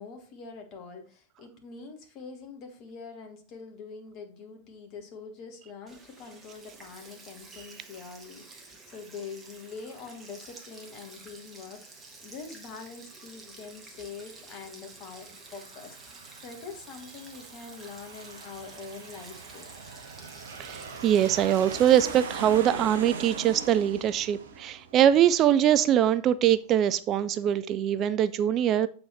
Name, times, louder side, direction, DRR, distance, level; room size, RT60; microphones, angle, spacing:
voice 1, 0.0-19.7, left 5 dB, 40° left, 1.7 m, -44 dB
Sink (filling or washing), 5.9-22.6, right 3 dB, 15° right, 1.5 m, -50 dB
Aircraft, 14.9-26.1, right 4 dB, 60° right, 0.8 m, -41 dB
voice 2, 20.6-28.9, right 10 dB, 35° right, 0.3 m, -23 dB
7.6 x 4.3 x 4.4 m
figure-of-eight pair, 90°, 0 cm